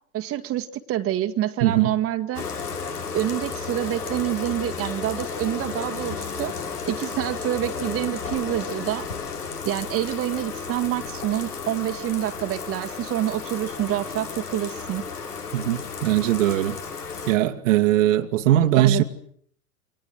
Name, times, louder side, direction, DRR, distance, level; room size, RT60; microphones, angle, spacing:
voice 1, 0.1-2.4 3.1-6.5 6.8-9.1 9.6-15.0 18.7-19.0, right 12 dB, 30° right, 1.8 m, -27 dB
voice 2, 1.6-1.9 15.5-16.8 17.3-19.0, right 13 dB, 55° right, 2.0 m, -20 dB
Bathtub (filling or washing), 2.3-17.3, left 5 dB, 75° left, 5.0 m, -33 dB
28.5 x 25.5 x 7.8 m
figure-of-eight pair, 90°, 46 cm